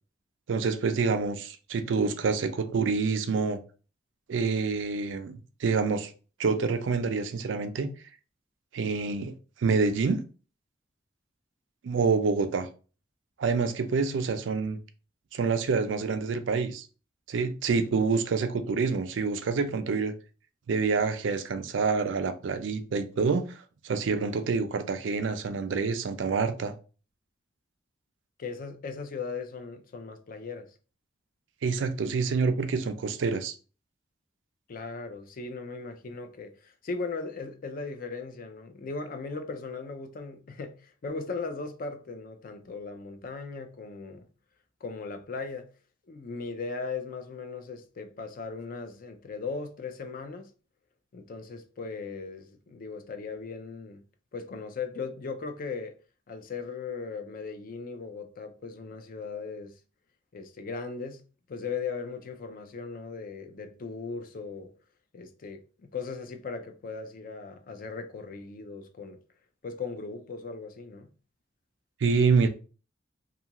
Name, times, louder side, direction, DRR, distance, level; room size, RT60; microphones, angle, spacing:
voice 1, 0.5-3.6 4.3-6.1 6.4-7.9 8.7-9.3 9.6-10.2 11.8-12.7 13.4-14.8 15.3-16.9 17.3-20.1 20.7-23.6 23.8-26.7 31.6-33.6 72.0-72.5, right 4 dB, 75° right, 0.4 m, -27 dB
voice 2, 28.4-30.7 34.7-44.3 44.8-45.7 46.1-50.5 51.1-54.0 54.3-55.9 56.3-59.8 60.3-61.2 61.5-64.7 65.1-65.6 65.9-69.2 69.6-71.1, left 4 dB, 50° left, 0.4 m, -38 dB
2.7 x 2.4 x 2.9 m
head